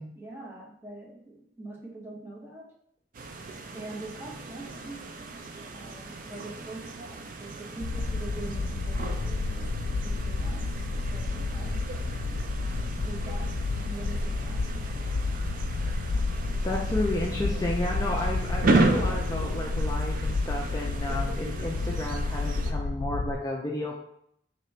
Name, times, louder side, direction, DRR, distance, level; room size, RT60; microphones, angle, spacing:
voice 1, 0.1-2.7 3.7-5.0 5.7-11.9 12.2-12.3 12.9-15.1, right 2 dB, 15° right, -3 dB, 0.9 m, -44 dB
sound 1, 3.1-22.7, right 2 dB, 50° right, 0.4 m, -34 dB
sound 2, 7.8-23.4, left 3 dB, 85° left, 0.3 m, -30 dB
voice 2, 16.6-24.0, left 1 dB, 20° left, -1 dB, 0.4 m, -32 dB
3.3 x 2.9 x 4.3 m, 0.70 s
head